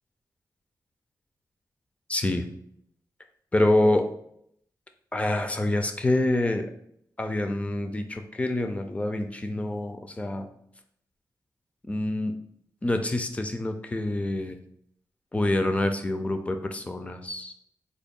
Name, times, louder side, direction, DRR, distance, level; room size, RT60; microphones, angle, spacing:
voice 1, 2.1-2.5 3.5-4.1 5.1-6.7 7.2-10.5 11.9-12.3 12.8-14.6 15.3-17.5, left 1 dB, 20° left, 6 dB, 0.4 m, -26 dB
3.8 x 2.1 x 3.5 m, 0.71 s
wide cardioid pair, 130°, 7 cm